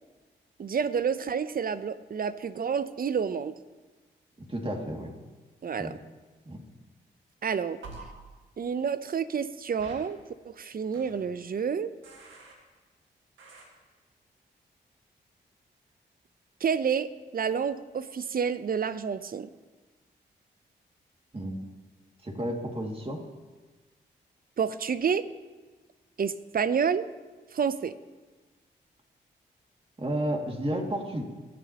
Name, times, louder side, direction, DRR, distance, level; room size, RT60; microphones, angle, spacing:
voice 1, 0.6-3.5 5.6-6.0 7.4-7.8 8.6-10.2 10.5-11.9 16.6-19.5 24.6-25.3 26.2-27.1 27.5-27.9, right 6 dB, 50° right, 14 dB, 0.6 m, -29 dB
voice 2, 4.4-5.1 5.8-5.9 6.5-6.6 21.3-21.6 22.2-23.2 30.0-31.2, right 1 dB, 30° right, 2 dB, 2.2 m, -32 dB
sound 1, 7.8-8.0 9.8-9.9 10.9-11.3 12.0-12.5 13.4-13.7, right 4 dB, 85° right, 1.6 m, -46 dB
21.0 x 7.6 x 2.9 m, 1.3 s
supercardioid pair, 45°, 19 cm